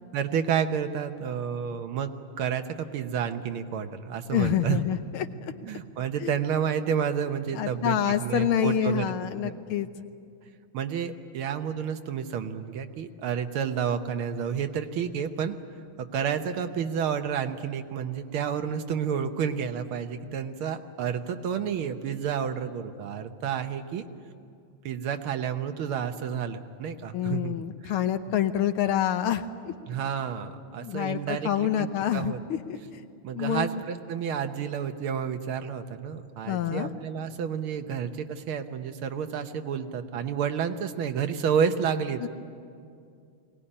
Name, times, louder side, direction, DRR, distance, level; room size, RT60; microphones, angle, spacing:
voice 1, 0.1-4.8 5.6-9.1 9.4-9.5 10.7-15.6 16.0-24.0 24.9-27.6 27.8-27.9 29.9-32.4 33.2-42.3, right 7 dB, 80° right, 8 dB, 1.9 m, -30 dB
voice 2, 4.3-5.3 6.2-6.4 7.6-9.9 27.1-29.7 30.7-33.0 33.3-33.8 36.5-36.9 42.2-42.3, left 10 dB, 85° left, 9 dB, 1.8 m, -27 dB
21.5 x 18.5 x 10.0 m, 2.4 s
omnidirectional pair, 2.3 m